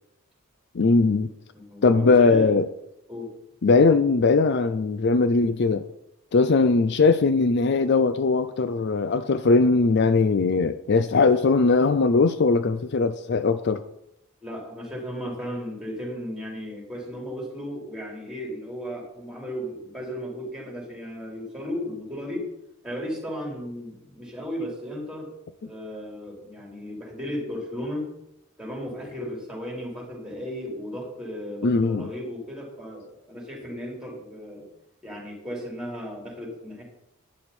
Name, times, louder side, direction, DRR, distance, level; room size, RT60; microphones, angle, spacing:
voice 1, 0.7-1.3 1.8-2.7 3.6-5.9 6.3-13.8 31.6-32.1, left 4 dB, 55° left, 11 dB, 0.5 m, -20 dB
voice 2, 1.5-2.6 3.1-3.3 6.3-6.5 14.4-22.4 22.8-25.3 25.6-28.0 28.6-34.7 35.0-36.8, equal, 5° right, -2 dB, 3.9 m, -35 dB
11.0 x 9.7 x 4.3 m, 0.82 s
head